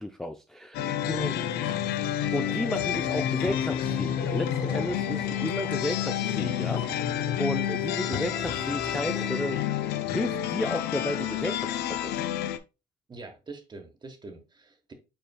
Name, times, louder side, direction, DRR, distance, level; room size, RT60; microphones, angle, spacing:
voice 1, 0.0-1.4 2.3-9.6 9.9-12.3, left 1 dB, 5° left, 0.3 m, -33 dB
sound 1, 0.7-12.6, left 11 dB, 70° left, 0.5 m, -29 dB
sound 2, 1.0-9.6, left 3 dB, 30° left, 1.3 m, -39 dB
voice 2, 13.1-14.9, right 3 dB, 25° right, 1.1 m, -44 dB
5.5 x 4.3 x 2.2 m
cardioid pair, 110°, 17 cm